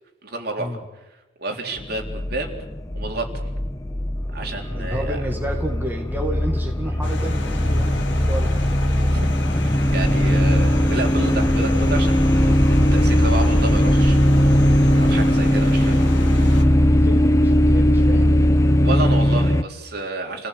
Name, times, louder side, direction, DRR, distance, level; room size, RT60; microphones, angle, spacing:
voice 1, 0.2-0.8 1.4-2.5 2.9-3.3 4.3-5.2 9.1-9.2 9.6-14.2 14.9-16.1 16.5-16.8 18.8-20.5, right 2 dB, 55° right, 2 dB, 3.7 m, -30 dB
sound 1, 1.8-19.6, equal, 15° left, 0.8 m, -19 dB
voice 2, 4.7-8.6 16.7-18.9, equal, 10° right, 1 dB, 2.2 m, -31 dB
sound 2, 7.0-16.6, left 2 dB, 80° left, 2.2 m, -34 dB
sound 3, 9.8-15.5, equal, 40° right, 4.1 m, -28 dB
29.5 x 17.5 x 8.5 m, 1.0 s
head